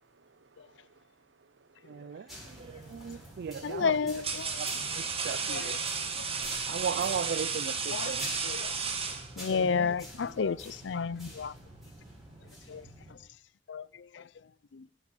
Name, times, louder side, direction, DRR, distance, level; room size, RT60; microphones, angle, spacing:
voice 1, 0.0-3.4 4.4-4.6, right 3 dB, 80° right, 0.9 m, -64 dB
voice 2, 1.8-4.2 4.5-5.8 6.7-8.3, right 7 dB, 60° right, 0.4 m, -37 dB
sound 1, 2.3-13.1, equal, ahead, 4.6 m, -47 dB
sound 2, 2.6-2.9 3.7-9.7, right 5 dB, 35° right, 1.8 m, -34 dB
voice 3, 3.6-4.5 5.5-5.7 7.9-8.1 8.4-8.7 9.4-11.5 12.7-12.8 13.7-13.9 14.1-14.2 14.7-14.8, left 5 dB, 75° left, 0.5 m, -31 dB
10.0 x 8.3 x 8.2 m
head